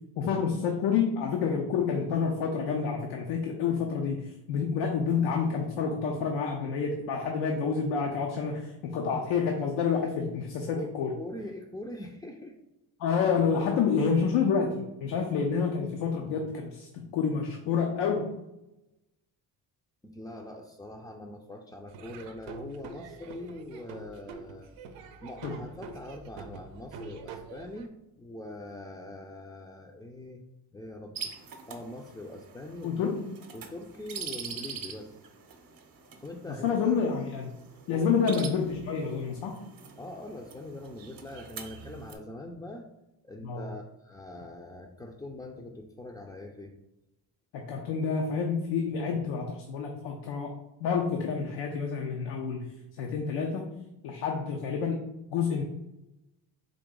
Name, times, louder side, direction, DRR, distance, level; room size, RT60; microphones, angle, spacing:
voice 1, 0.2-11.1 13.0-18.3 25.4-25.5 32.8-33.3 36.6-37.5 37.9-39.6 43.4-43.7 47.5-53.7 54.0-55.0 55.3-55.6, left 6 dB, 85° left, 2 dB, 0.6 m, -28 dB
voice 2, 10.7-12.5 20.0-24.7 25.2-27.9 28.1-30.4 30.7-33.1 33.5-35.2 36.2-36.9 37.9-38.1 40.0-42.8 43.2-46.7, left 1 dB, 10° left, -1 dB, 0.4 m, -43 dB
Laughter / Drum, 21.9-27.9, right 4 dB, 85° right, 0.6 m, -45 dB
sound 1, 31.1-42.2, right 6 dB, 50° right, 0.8 m, -44 dB
3.8 x 2.7 x 3.8 m, 0.93 s
supercardioid pair, 70°, 44 cm